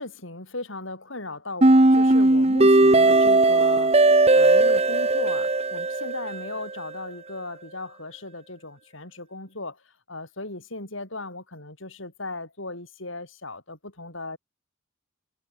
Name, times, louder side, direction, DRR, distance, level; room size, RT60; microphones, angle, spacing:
voice 1, 0.0-3.9 4.3-9.8 10.1-14.4, left 2 dB, 65° left, 7.8 m, -37 dB
sound 1, 1.6-6.6, right 2 dB, 30° right, 1.5 m, -18 dB
head